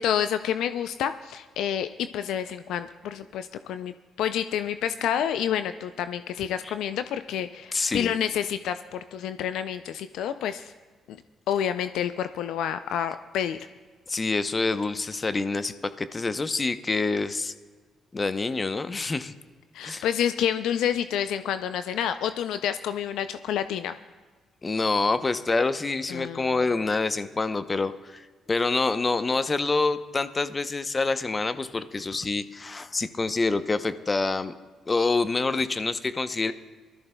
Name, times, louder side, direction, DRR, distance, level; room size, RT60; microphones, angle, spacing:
voice 1, 0.0-10.7 11.1-11.2 11.5-13.6 19.7-23.9 26.1-26.6, left 9 dB, 75° left, 11 dB, 0.3 m, -29 dB
voice 2, 7.7-8.1 14.1-17.5 18.1-19.3 19.8-20.1 24.6-34.5 34.9-36.5, left 3 dB, 35° left, 12 dB, 0.7 m, -27 dB
22.0 x 13.5 x 2.2 m, 1.4 s
supercardioid pair, 55°, 0 cm